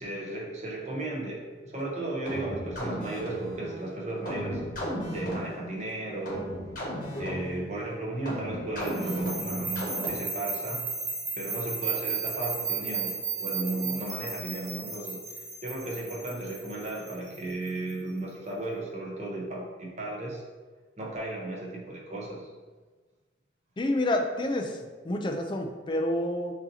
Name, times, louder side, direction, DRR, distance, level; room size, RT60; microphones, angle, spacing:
voice 1, 0.0-4.6 5.1-6.5 7.2-10.9 11.4-13.1 13.4-15.2 15.6-20.4 21.0-22.5, right 2 dB, 40° right, -3 dB, 0.9 m, -34 dB
sound 1, 2.3-10.5, equal, 50° left, 1.2 m, -36 dB
sound 2, 8.8-17.9, right 5 dB, 85° right, 1.2 m, -34 dB
voice 2, 23.8-24.8 25.0-26.5, left 1 dB, 25° left, 3 dB, 0.4 m, -28 dB
6.1 x 2.8 x 2.8 m, 1.4 s
head